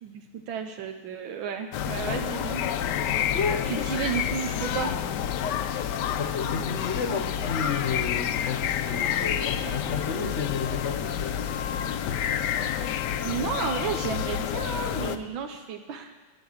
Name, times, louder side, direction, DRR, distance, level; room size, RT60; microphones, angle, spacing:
voice 1, 0.0-2.6 3.7-4.9 9.6-9.8 13.2-16.1, right 7 dB, 75° right, 5 dB, 1.6 m, -32 dB
sound 1, 1.7-15.2, left 9 dB, 70° left, 1.1 m, -29 dB
voice 2, 3.3-4.0 6.1-11.4, left 5 dB, 45° left, 6 dB, 1.1 m, -31 dB
12.5 x 9.0 x 7.2 m, 1.2 s
omnidirectional pair, 2.2 m